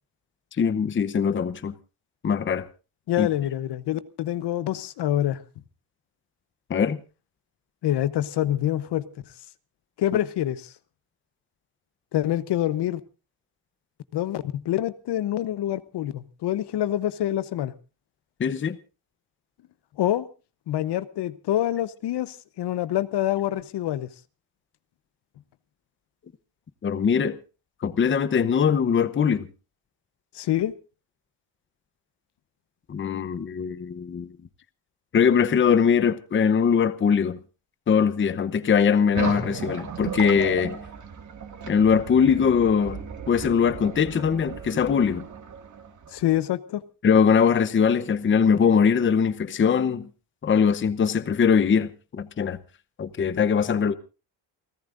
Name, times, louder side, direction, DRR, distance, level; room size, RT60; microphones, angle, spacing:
voice 1, 0.6-1.7 2.2-2.6 3.2-3.3 6.7-7.0 18.4-18.8 26.8-27.4 27.8-29.5 32.9-34.3 35.1-37.4 37.9-40.8 41.7-43.0 43.3-45.2 47.0-50.1 50.4-52.6 53.0-53.9, left 6 dB, 25° left, 0.8 m, -21 dB
voice 2, 3.1-5.4 7.8-9.0 10.0-10.7 12.1-13.0 14.1-17.7 20.0-20.3 20.7-24.1 30.3-30.7 46.1-46.8, left 12 dB, 60° left, 0.9 m, -26 dB
sound 1, 39.1-46.4, right 6 dB, 40° right, 2.1 m, -35 dB
29.0 x 14.0 x 2.6 m
cardioid pair, 125°, 46 cm